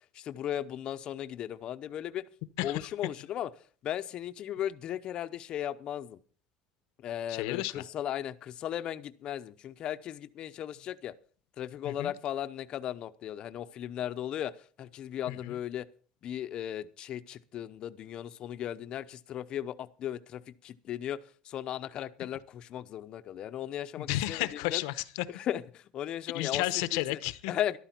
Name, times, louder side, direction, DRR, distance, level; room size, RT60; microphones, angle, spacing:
voice 1, 0.3-2.2 2.6-3.5 3.8-6.2 7.0-11.1 11.6-14.5 14.8-15.8 16.2-19.7 20.0-20.4 20.6-21.2 21.5-24.5 24.7-24.8 25.5-25.6 25.9-26.6 27.5-27.8, left 11 dB, 40° left, 12 dB, 0.7 m, -36 dB
voice 2, 2.6-2.9 7.3-7.8 11.8-12.1 15.3-15.6 24.0-25.3 26.3-27.6, left 17 dB, 85° left, 15 dB, 0.9 m, -32 dB
13.5 x 12.0 x 4.4 m, 0.41 s
cardioid pair, 160°, 2 cm